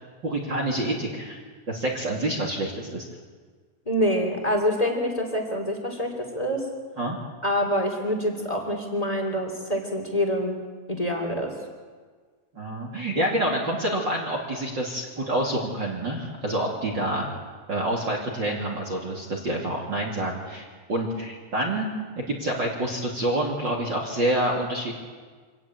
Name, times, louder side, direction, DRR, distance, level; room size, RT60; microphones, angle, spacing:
voice 1, 0.2-1.4 1.7-3.0 7.0-7.2 12.5-17.4 17.7-21.9 22.1-24.9, right 1 dB, 30° right, 0 dB, 2.4 m, -27 dB
voice 2, 3.8-6.7 7.4-10.6 10.9-11.5, equal, 10° left, 3 dB, 2.6 m, -26 dB
26.0 x 13.0 x 9.1 m, 1.5 s
omnidirectional pair, 4.9 m